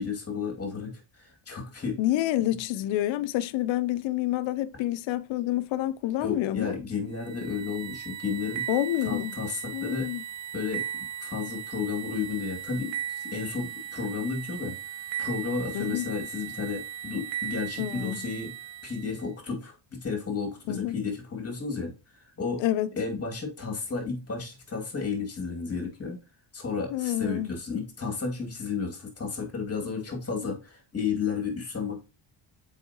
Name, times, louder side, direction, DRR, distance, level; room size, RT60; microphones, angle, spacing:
voice 1, 0.0-2.0 6.2-8.7 9.0-10.1 10.5-10.8 11.2-14.7 15.2-18.5 18.8-22.6 23.0-26.2 26.5-32.0, left 5 dB, 30° left, 2.3 m, -32 dB
voice 2, 2.0-6.7 8.7-9.4 9.7-10.2 15.7-16.1 17.8-18.2 20.7-21.0 22.6-22.9 26.9-27.5, left 14 dB, 75° left, 0.6 m, -28 dB
sound 1, 7.2-19.3, right 10 dB, 70° right, 1.0 m, -37 dB
7.2 x 4.8 x 2.9 m
cardioid pair, 110°, 46 cm